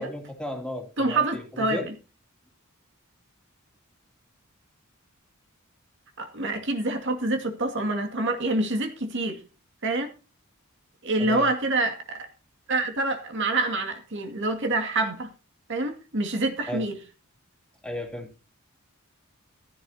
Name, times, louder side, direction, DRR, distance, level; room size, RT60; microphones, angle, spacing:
voice 1, 0.0-1.9 11.2-11.5 16.7-16.9 17.8-18.3, left 1 dB, 5° left, 2.8 m, -34 dB
voice 2, 1.0-1.9 6.2-9.4 9.8-10.1 11.0-12.3 12.7-15.3 15.7-17.0, right 2 dB, 60° right, 2.2 m, -26 dB
14.5 x 14.0 x 2.8 m
head